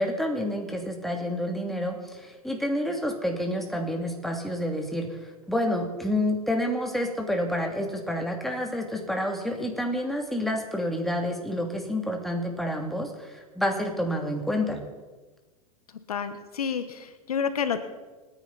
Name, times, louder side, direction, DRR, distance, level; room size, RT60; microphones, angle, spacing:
voice 1, 0.0-14.8, left 1 dB, ahead, 2 dB, 2.6 m, -29 dB
voice 2, 16.1-17.8, left 7 dB, 80° left, 11 dB, 1.2 m, -29 dB
27.0 x 10.0 x 4.1 m, 1.2 s
hypercardioid pair, 100°, 19 cm